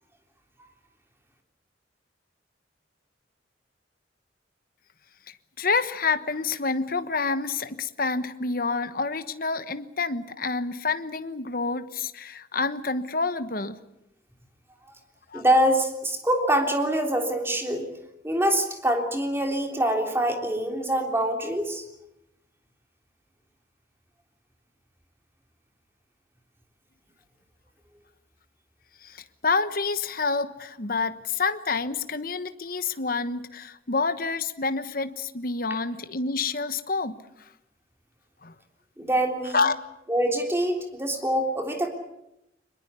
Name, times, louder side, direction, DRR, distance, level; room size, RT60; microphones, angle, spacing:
voice 1, 5.3-13.8 15.3-15.4 29.0-37.2 38.4-38.5 39.5-39.7, left 4 dB, 55° left, 11 dB, 1.2 m, -28 dB
voice 2, 15.3-17.9 18.2-21.8 39.0-39.6 40.1-41.9, right 1 dB, 15° right, 3 dB, 3.5 m, -24 dB
24.0 x 21.5 x 8.3 m, 0.88 s
head